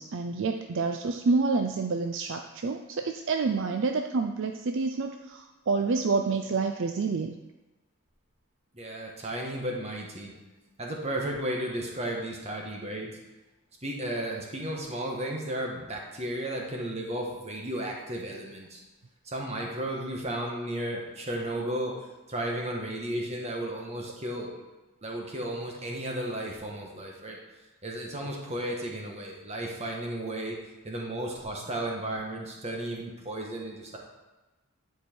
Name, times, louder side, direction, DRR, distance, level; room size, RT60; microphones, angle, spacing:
voice 1, 0.0-7.3, right 4 dB, 55° right, 5 dB, 0.4 m, -28 dB
voice 2, 8.7-10.3 10.8-13.1 13.8-18.8 19.2-24.5 25.0-27.4 27.8-30.6 30.8-34.0, right 1 dB, 30° right, -1 dB, 1.4 m, -34 dB
11.0 x 4.8 x 4.5 m, 1.1 s
head